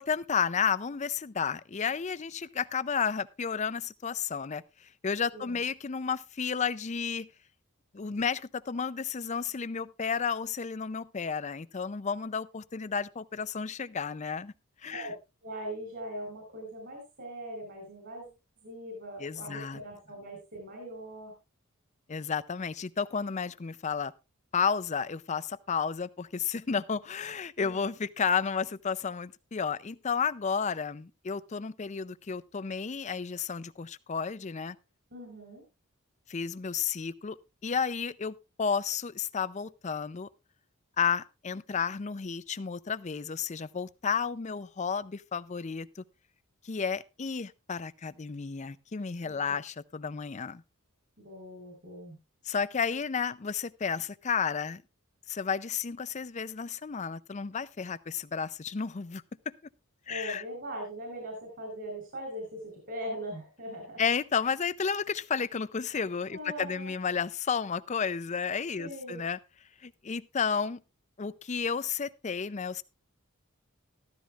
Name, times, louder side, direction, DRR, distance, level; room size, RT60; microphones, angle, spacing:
voice 1, 0.0-7.3 7.9-14.5 14.8-15.1 19.2-19.8 22.1-24.1 24.5-34.8 36.3-37.4 37.6-40.3 41.0-46.0 46.6-50.6 52.4-54.8 55.3-59.2 60.1-60.4 64.0-69.4 69.8-70.8 71.2-72.8, left 6 dB, 35° left, 0.5 m, -32 dB
voice 2, 15.4-18.3 18.6-21.3 27.6-27.8 35.1-35.6 49.2-49.5 51.2-52.2 60.1-64.0 66.3-66.9 68.8-69.2, right 1 dB, 50° right, 4.8 m, -41 dB
14.0 x 13.5 x 2.4 m
head